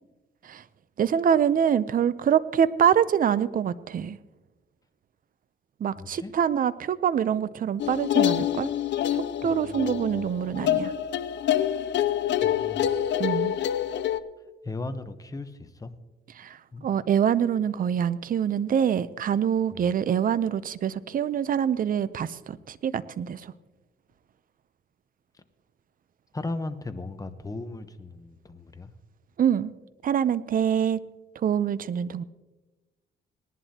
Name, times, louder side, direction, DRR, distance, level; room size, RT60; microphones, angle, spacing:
voice 1, 1.0-4.2 5.8-8.7 9.4-10.9 13.2-13.5 16.4-16.6 16.8-23.5 29.4-29.7 30.0-31.0 31.4-32.2, right 8 dB, 45° right, 16 dB, 0.6 m, -25 dB
voice 2, 5.9-6.3 9.4-10.3 12.4-12.9 14.6-15.9 16.7-16.9 19.7-19.9 26.3-28.9, left 2 dB, 15° left, 10 dB, 0.9 m, -37 dB
sound 1, 7.8-14.2, left 11 dB, 65° left, 0.6 m, -26 dB
19.5 x 11.0 x 2.9 m, 1.1 s
cardioid pair, 90°, 20 cm